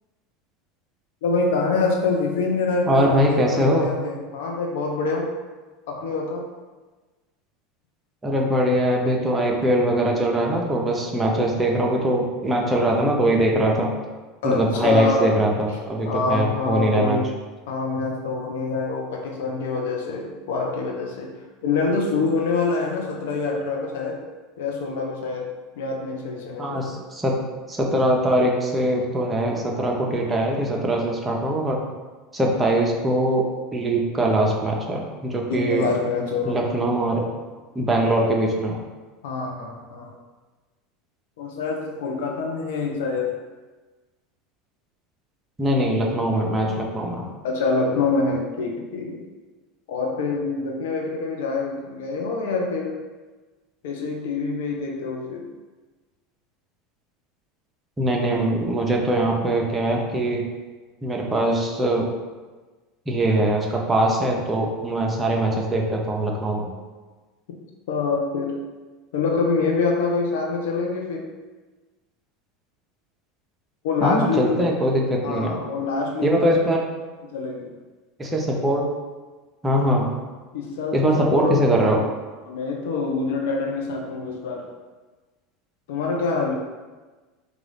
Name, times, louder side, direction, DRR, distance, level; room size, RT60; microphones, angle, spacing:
voice 1, 1.2-5.3 5.9-6.5 14.4-17.3 17.7-21.3 21.6-24.2 24.6-25.5 25.8-26.9 35.5-36.6 37.2-37.4 39.2-40.1 41.4-43.3 45.9-46.0 47.4-49.2 49.9-53.0 53.8-55.5 58.3-58.4 67.9-68.6 69.1-71.3 73.8-74.6 75.2-76.6 77.2-77.7 80.5-82.1 82.4-84.7 85.9-86.5, left 4 dB, 70° left, 1 dB, 0.6 m, -26 dB
voice 2, 2.9-3.9 8.2-13.9 14.4-17.2 26.6-27.4 27.7-31.8 32.3-35.9 36.4-37.3 37.7-38.8 45.6-47.3 58.0-60.4 61.0-62.1 63.1-66.7 74.0-75.6 76.2-76.8 78.2-78.9 79.6-80.1 80.9-82.0, right 1 dB, 15° right, -1 dB, 0.6 m, -22 dB
3.8 x 2.4 x 3.3 m, 1.3 s
hypercardioid pair, 80°, 0 cm